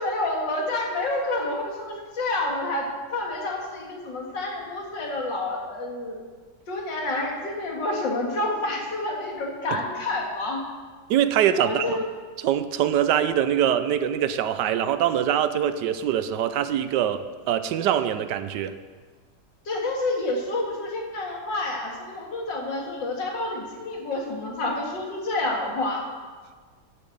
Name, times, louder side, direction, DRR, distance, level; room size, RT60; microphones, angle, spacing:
voice 1, 0.0-2.8 3.1-6.2 6.7-10.6 11.6-12.1 19.7-26.0, left 2 dB, 80° left, -1 dB, 2.6 m, -28 dB
voice 2, 11.1-12.0 12.4-18.8, right 10 dB, 75° right, 12 dB, 1.2 m, -23 dB
10.5 x 7.0 x 7.9 m, 1.5 s
omnidirectional pair, 1.9 m